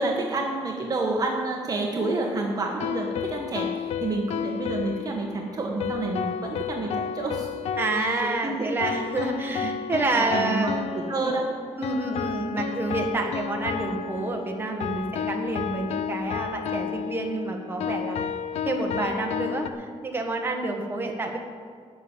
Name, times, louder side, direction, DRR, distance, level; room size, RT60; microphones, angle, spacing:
voice 1, 0.0-7.5 7.9-9.0 9.6-9.7 10.1-11.5, right 2 dB, 35° right, 0 dB, 1.5 m, -29 dB
sound 1, 2.0-19.7, left 8 dB, 80° left, 0.6 m, -32 dB
voice 2, 7.8-10.7 11.2-11.3 11.8-18.2 18.6-21.4, right 2 dB, 20° right, 1 dB, 1.7 m, -28 dB
12.0 x 7.1 x 9.1 m, 2.1 s
cardioid pair, 130°, 11 cm